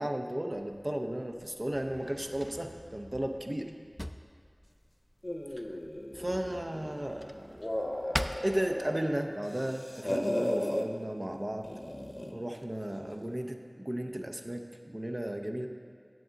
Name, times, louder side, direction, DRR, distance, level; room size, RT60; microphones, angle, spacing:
voice 1, 0.0-3.7 6.1-7.7 8.4-11.7 12.3-15.7, right 1 dB, 35° right, 4 dB, 0.6 m, -34 dB
Drawer open or close, 0.5-9.3, equal, 15° left, 0.4 m, -44 dB
sound 1, 5.2-7.0 7.4-9.1 9.4-10.9 11.6-12.4, left 1 dB, 40° left, 0.8 m, -35 dB
10.5 x 7.5 x 3.9 m, 2.1 s
wide cardioid pair, 40°, 0 cm